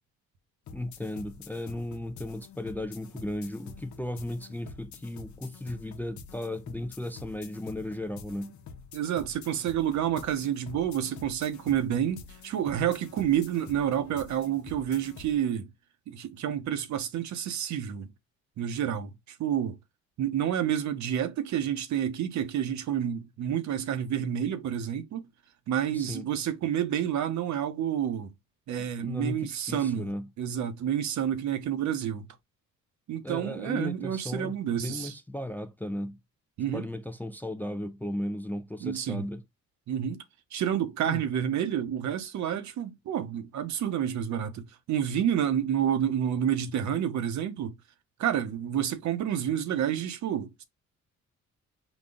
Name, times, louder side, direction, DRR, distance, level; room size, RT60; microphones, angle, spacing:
sound 1, 0.7-15.4, left 5 dB, 70° left, 0.8 m, -48 dB
voice 1, 0.7-8.5 25.9-26.3 28.8-30.3 33.2-36.2 36.7-39.4 41.0-41.2, left 1 dB, 5° left, 0.4 m, -36 dB
voice 2, 8.9-15.7 16.1-18.1 18.6-19.1 19.4-19.8 20.2-25.3 25.7-28.3 28.7-30.1 30.4-32.3 33.1-35.1 36.6-36.9 38.8-39.2 39.9-40.2 40.5-47.7 48.2-50.6, right 9 dB, 70° right, 0.8 m, -29 dB
4.0 x 2.3 x 3.6 m
cardioid pair, 90°, 30 cm